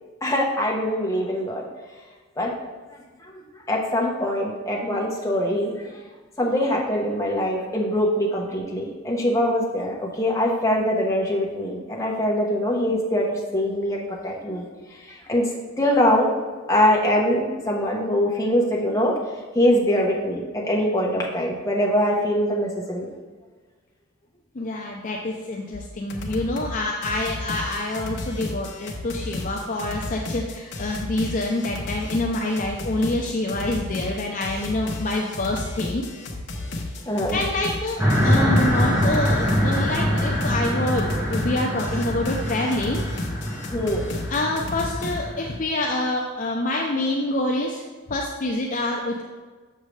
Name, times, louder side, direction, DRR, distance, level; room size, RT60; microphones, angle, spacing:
voice 1, 0.2-1.6 2.4-2.5 3.2-6.0 6.4-14.7 15.1-15.5 15.8-16.3 16.7-19.1 19.5-23.1 37.1-37.4 43.7-44.1, equal, 15° left, -2 dB, 1.0 m, -23 dB
voice 2, 24.5-36.1 37.3-43.0 44.3-47.8 48.1-49.2, left 2 dB, 40° left, 0 dB, 0.5 m, -26 dB
sound 1, 25.7-25.8 26.1-26.7 27.0-45.2, left 2 dB, 55° left, 0.9 m, -33 dB
sound 2, 38.0-45.5, equal, 10° right, 1.1 m, -24 dB
6.6 x 6.4 x 3.2 m, 1.3 s
head